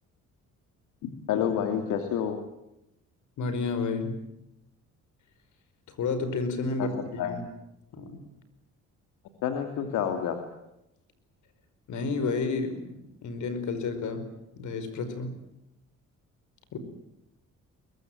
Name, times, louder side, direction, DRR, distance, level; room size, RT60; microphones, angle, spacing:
voice 1, 1.0-2.4 6.8-7.3 9.4-10.4, left 8 dB, 90° left, 6 dB, 2.6 m, -29 dB
voice 2, 3.4-4.3 5.9-7.4 7.9-8.3 11.9-15.3 16.7-16.8, left 4 dB, 75° left, 11 dB, 5.2 m, -31 dB
23.0 x 22.0 x 9.2 m, 0.86 s
cardioid pair, 90°, 30 cm